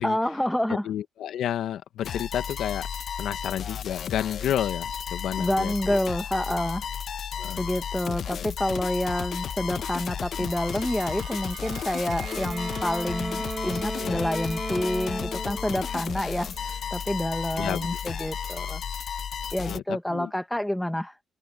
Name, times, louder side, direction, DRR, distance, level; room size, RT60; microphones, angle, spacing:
voice 1, 0.0-0.9 5.4-6.8 7.6-16.5 16.9-18.8 19.5-21.1, left 1 dB, 5° left, 1.3 m, -28 dB
voice 2, 0.8-2.9 3.2-6.0 7.4-7.7 8.1-8.2 14.0-14.3 17.6-18.0 19.7-20.3, left 10 dB, 75° left, 1.3 m, -31 dB
sound 1, 2.0-19.8, left 8 dB, 60° left, 0.9 m, -33 dB
sound 2, 9.9-14.1 14.5-14.9 15.5-18.7, right 12 dB, 80° right, 3.7 m, -47 dB
sound 3, 12.2-16.7, right 1 dB, 10° right, 6.7 m, -36 dB
open air
cardioid pair, 90°, 0 cm